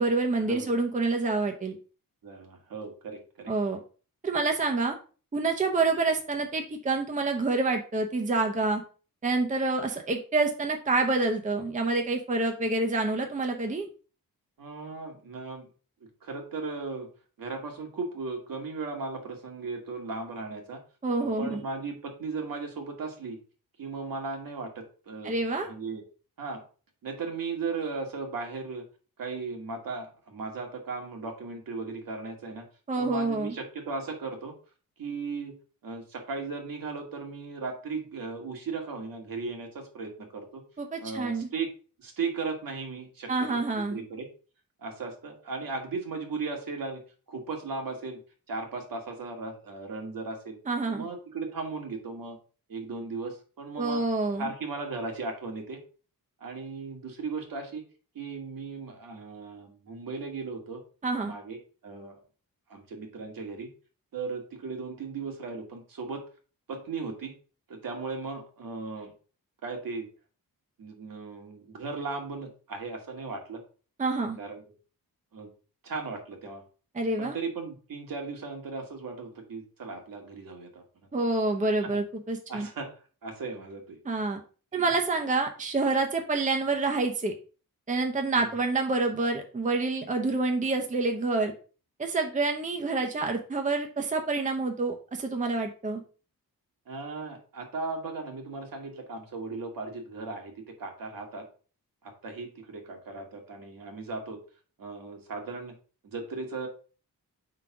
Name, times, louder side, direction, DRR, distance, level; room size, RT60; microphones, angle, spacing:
voice 1, 0.0-1.8 3.5-3.8 4.2-5.0 5.3-8.8 9.2-13.9 21.0-21.6 25.2-25.7 32.9-33.6 40.8-41.5 43.3-44.0 50.7-51.1 53.8-54.5 61.0-61.3 74.0-74.4 76.9-77.4 81.1-82.7 84.0-84.4 84.7-87.3 87.9-91.5 92.0-96.0, right 3 dB, 20° right, 3 dB, 0.7 m, -27 dB
voice 2, 2.2-3.5 14.6-15.7 16.2-17.1 17.4-20.8 21.2-23.4 23.8-25.3 25.7-26.0 26.4-26.6 27.0-28.8 29.2-32.7 33.0-34.5 35.0-35.5 35.8-40.6 41.0-41.7 42.0-44.3 44.8-47.0 47.3-48.2 48.5-50.6 50.9-52.4 52.7-54.0 54.4-55.8 56.4-57.8 58.2-60.8 61.2-61.6 61.8-62.2 62.7-63.7 64.1-66.2 66.7-67.3 67.7-69.1 69.6-70.1 70.8-73.6 74.4-74.6 75.3-75.5 75.8-76.6 77.2-80.8 81.8-81.9 82.5-84.0 84.7-84.9 88.3-88.5 96.9-100.5 100.8-101.4 102.0-104.4 104.8-105.7 106.0-106.7, right 4 dB, 70° right, 2 dB, 1.8 m, -36 dB
4.8 x 3.9 x 5.7 m, 0.37 s
wide cardioid pair, 160°, 35 cm